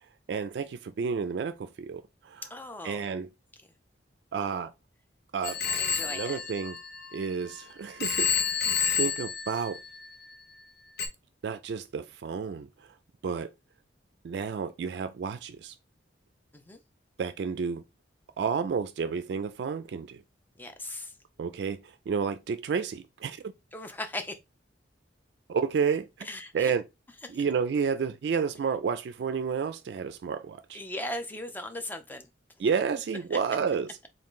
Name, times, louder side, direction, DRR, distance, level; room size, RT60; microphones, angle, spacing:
voice 1, 0.3-2.4 2.8-3.3 4.3-4.7 5.3-5.6 6.0-6.8 7.1-9.8 11.4-12.7 13.2-13.5 14.2-15.7 17.2-17.8 18.4-20.2 21.4-23.4 25.5-26.3 26.5-26.8 27.3-30.8 32.6-34.0, right 6 dB, 65° right, 0.3 m, -31 dB
voice 2, 2.5-3.0 5.6-6.4 16.7-16.8 20.6-21.1 23.7-24.4 26.2-26.7 27.2-27.4 30.7-32.3 33.3-33.4, left 1 dB, 10° left, 0.5 m, -38 dB
Telephone, 5.4-7.6 8.0-10.3 11.0-11.1, left 7 dB, 60° left, 0.6 m, -30 dB
3.7 x 2.5 x 3.6 m
head